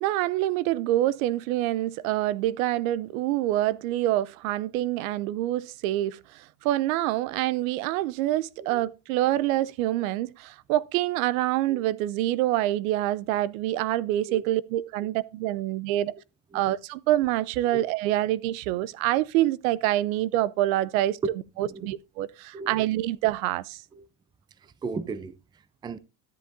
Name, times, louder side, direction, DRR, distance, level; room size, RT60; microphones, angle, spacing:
voice 1, 0.0-16.2 16.5-21.2 21.6-23.8, right 14 dB, 75° right, 0.7 m, -26 dB
voice 2, 8.6-8.9 11.7-11.8 14.3-14.4 16.1-16.2 16.5-16.7 17.7-17.9 21.6-21.9 22.5-22.8 23.9-24.1 24.6-26.0, right 4 dB, 10° right, 0.4 m, -37 dB
13.0 x 7.9 x 2.6 m
supercardioid pair, 130°, 41 cm